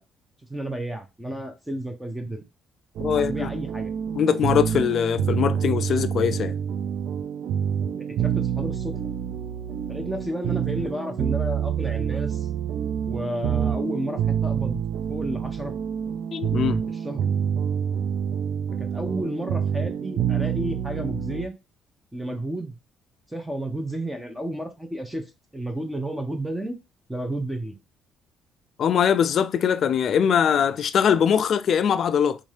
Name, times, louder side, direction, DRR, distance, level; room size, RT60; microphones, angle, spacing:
voice 1, 0.5-2.4 3.1-3.9 7.9-8.9 9.9-12.5 13.1-14.8 15.1-15.7 16.9-17.3 18.8-21.5 22.1-22.7 23.3-25.3 25.5-26.8 27.1-27.8, right 1 dB, 5° right, 0.6 m, -32 dB
voice 2, 3.0-3.5 4.1-6.5 16.3-16.8 28.8-32.4, left 8 dB, 50° left, 0.3 m, -22 dB
sound 1, 3.0-21.5, right 8 dB, 65° right, 0.3 m, -27 dB
3.6 x 2.6 x 3.2 m
cardioid pair, 145°, 0 cm